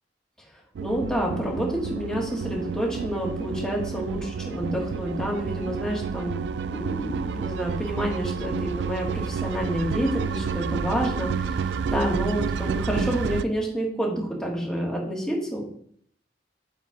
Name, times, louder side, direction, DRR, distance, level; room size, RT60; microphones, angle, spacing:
sound 1, 0.7-13.4, right 6 dB, 70° right, 0.3 m, -30 dB
voice 1, 0.8-6.4 6.7-15.6, equal, 5° left, -3 dB, 1.8 m, -28 dB
8.5 x 3.7 x 4.8 m, 0.63 s
head